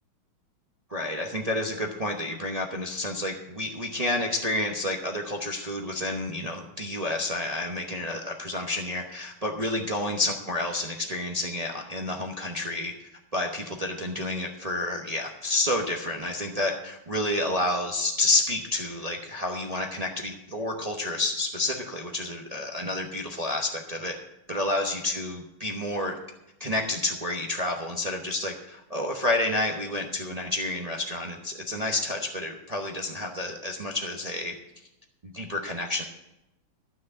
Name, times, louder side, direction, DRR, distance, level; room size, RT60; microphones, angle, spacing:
voice 1, 0.9-12.9 13.3-24.1 24.5-26.1 26.6-34.5 35.2-36.0, left 2 dB, 40° right, 1 dB, 0.5 m, -29 dB
12.0 x 6.3 x 8.0 m, 0.90 s
omnidirectional pair, 2.3 m